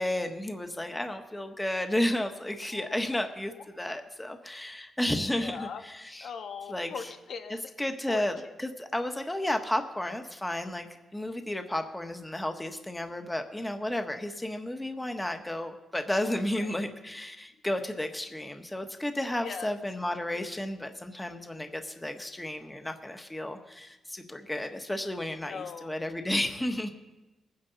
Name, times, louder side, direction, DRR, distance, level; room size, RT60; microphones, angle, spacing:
voice 1, 0.0-6.3 6.7-7.1 7.5-26.9, left 1 dB, 10° left, 5 dB, 1.3 m, -32 dB
voice 2, 2.7-3.2 5.3-5.8 6.2-7.6 8.1-8.2 16.5-16.7 19.4-19.7 25.4-25.9, left 6 dB, 70° left, 6 dB, 1.4 m, -40 dB
22.0 x 9.7 x 4.0 m, 1.1 s
cardioid pair, 85°, 0 cm